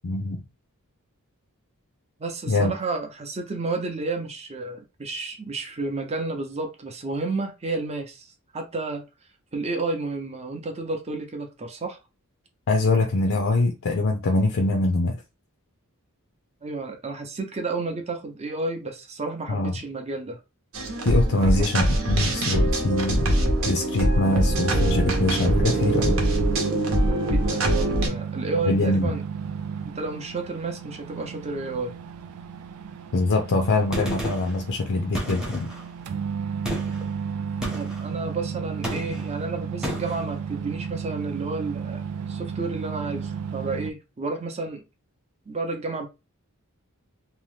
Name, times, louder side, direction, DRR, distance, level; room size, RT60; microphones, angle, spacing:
voice 1, 0.0-0.4 2.5-2.7 12.7-15.2 19.5-19.7 21.0-23.3 23.6-26.3 28.6-29.1 33.1-35.7, left 2 dB, 60° left, 0.5 m, -23 dB
voice 2, 2.2-8.3 8.5-9.0 9.5-12.0 16.6-20.4 21.3-21.6 27.3-29.2 29.9-32.0 37.7-42.0 42.3-44.8 45.5-46.1, right 3 dB, 30° right, 0.6 m, -31 dB
sound 1, 20.7-28.1, right 1 dB, 65° right, 0.9 m, -23 dB
sound 2, 24.2-43.9, right 6 dB, 90° right, 0.4 m, -33 dB
Gunshot gunfire, 33.9-34.6 35.1-35.9 36.6-37.1 37.6-38.1 38.8-39.3 39.8-40.2, equal, 5° right, 0.8 m, -32 dB
2.8 x 2.1 x 3.2 m
head